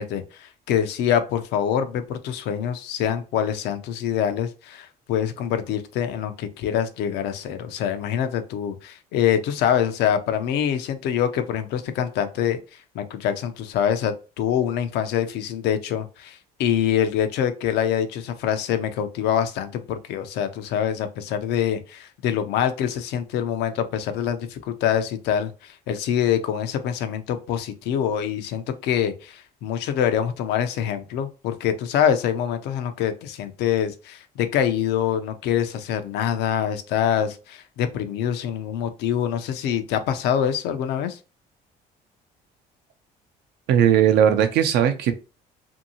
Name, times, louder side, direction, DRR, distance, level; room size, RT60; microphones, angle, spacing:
voice 1, 0.0-12.6 12.9-41.2, left 9 dB, 85° left, 0.5 m, -25 dB
voice 2, 43.7-45.1, right 9 dB, 80° right, 0.6 m, -18 dB
2.7 x 2.6 x 2.7 m
cardioid pair, 110°, 17 cm